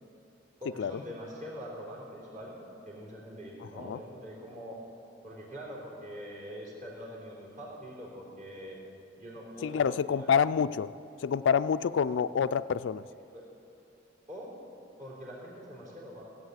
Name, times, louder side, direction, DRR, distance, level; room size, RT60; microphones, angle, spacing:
voice 1, 0.6-4.8 5.2-8.8 9.2-10.3 14.3-14.6 15.0-16.3, equal, 40° right, -4 dB, 3.5 m, -44 dB
voice 2, 3.6-4.0 9.6-10.9 11.2-13.0, left 7 dB, 70° left, 15 dB, 0.3 m, -27 dB
16.0 x 8.2 x 8.0 m, 2.7 s
head